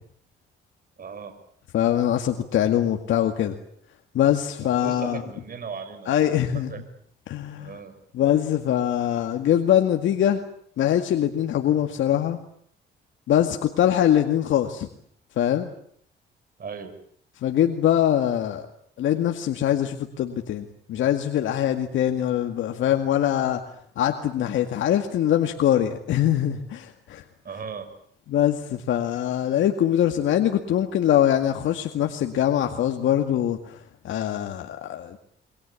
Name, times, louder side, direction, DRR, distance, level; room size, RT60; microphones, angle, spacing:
voice 1, 1.0-1.3 4.6-6.3 6.7-6.8 7.6-7.9 16.6-16.9 27.4-27.9, right 6 dB, 45° right, 9 dB, 6.2 m, -37 dB
voice 2, 1.7-3.5 4.1-5.2 6.1-6.7 7.3-7.7 8.1-10.4 10.8-12.4 13.3-14.9 15.4-15.7 17.4-18.6 19.0-23.6 24.0-27.2 28.3-33.8 34.0-35.2, left 11 dB, 75° left, 5 dB, 2.1 m, -23 dB
28.5 x 23.0 x 8.5 m, 0.64 s
cardioid pair, 90°, 20 cm